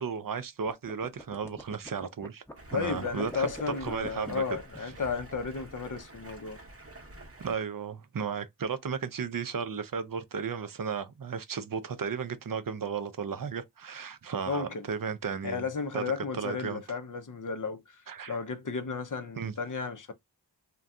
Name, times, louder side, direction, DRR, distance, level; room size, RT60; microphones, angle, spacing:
voice 1, 0.0-2.4 2.7-3.5 3.8-4.4 7.4-15.6 15.9-16.0 16.3-16.8 18.1-18.4 19.4-19.5, right 6 dB, 50° right, 0.5 m, -34 dB
sound 1, 0.6-5.9, left 1 dB, 5° left, 0.7 m, -44 dB
Stream, 2.6-7.6, right 1 dB, 35° right, 0.8 m, -49 dB
voice 2, 2.7-6.6 14.5-14.9 15.4-18.0 18.3-20.1, left 5 dB, 45° left, 0.5 m, -34 dB
2.6 x 2.2 x 3.4 m
wide cardioid pair, 50°, 43 cm